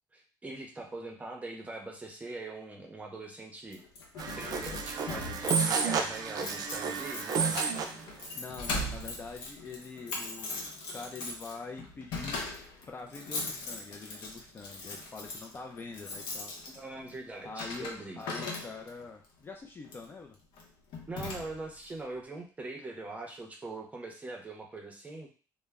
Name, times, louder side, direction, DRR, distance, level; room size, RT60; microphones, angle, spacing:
voice 1, 0.1-3.8 4.3-7.6 16.7-18.2 21.1-25.3, right 2 dB, 20° right, 1 dB, 0.6 m, -42 dB
Keys jangling, 3.7-19.1 19.8-20.1 20.6-20.7 20.9-21.8, left 2 dB, 85° left, 0.7 m, -40 dB
sound 1, 4.2-8.0, right 5 dB, 55° right, 0.4 m, -31 dB
voice 2, 8.4-10.6 10.9-12.4 12.9-16.5 17.4-17.9 18.2-20.4, left 4 dB, 25° left, 2 dB, 0.3 m, -44 dB
2.1 x 2.0 x 3.4 m, 0.37 s
cardioid pair, 105°, 8 cm